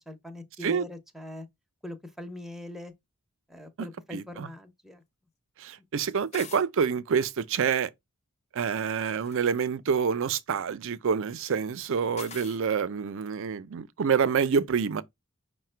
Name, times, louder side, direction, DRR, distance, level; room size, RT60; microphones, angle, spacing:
voice 1, 0.1-1.5 1.8-2.9 3.5-5.0, left 1 dB, ahead, 0.6 m, -42 dB
voice 2, 4.1-4.5 5.6-7.9 8.5-15.0, right 6 dB, 65° right, 0.5 m, -27 dB
sound 1, 6.3-6.7 9.1-9.6 12.2-12.6, left 6 dB, 30° left, 0.7 m, -44 dB
5.6 x 2.1 x 4.4 m
head